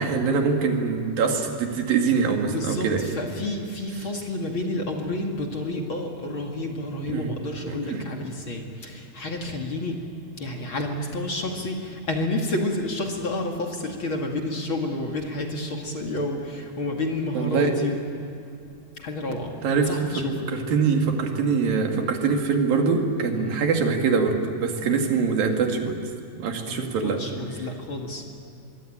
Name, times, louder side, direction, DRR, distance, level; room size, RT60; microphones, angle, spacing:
voice 1, 0.0-3.1 7.1-7.3 7.7-8.0 17.3-17.7 19.6-19.9 20.5-26.0 26.4-27.2, right 5 dB, 80° right, 3 dB, 4.0 m, -23 dB
voice 2, 2.4-10.0 10.4-17.9 19.0-19.5 19.9-20.4 23.3-23.6 26.7-28.2, left 2 dB, 40° left, 1 dB, 2.5 m, -30 dB
25.0 x 22.5 x 8.8 m, 2.6 s
omnidirectional pair, 4.0 m